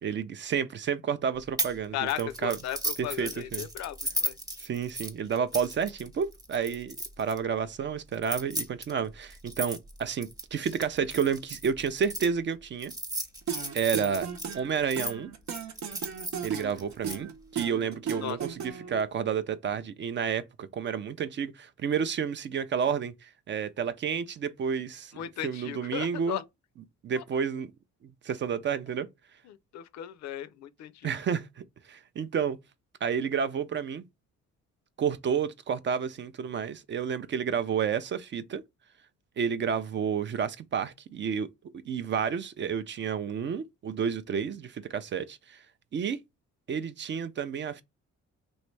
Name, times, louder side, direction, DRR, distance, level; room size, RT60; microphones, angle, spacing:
voice 1, 0.0-2.6 3.0-3.7 4.6-12.9 13.7-14.3 14.5-15.3 16.4-17.3 17.5-25.1 25.4-26.4 27.0-27.7 28.2-29.1 31.0-32.6 33.0-34.0 35.0-38.6 39.4-41.5 41.9-45.6 45.9-46.2 46.7-47.8, right 7 dB, 40° right, 0.4 m, -30 dB
sound 1, 1.6-1.8 2.1-7.4 8.1-12.3 12.8-15.1 15.5-17.2, right 1 dB, 10° right, 0.8 m, -35 dB
voice 2, 1.9-4.4 18.2-18.4 25.1-26.4 27.2-27.3 29.5-31.2, left 11 dB, 65° left, 0.4 m, -36 dB
sound 2, 13.5-19.0, right 7 dB, 70° right, 0.8 m, -36 dB
3.1 x 2.6 x 3.1 m
cardioid pair, 90°, 30 cm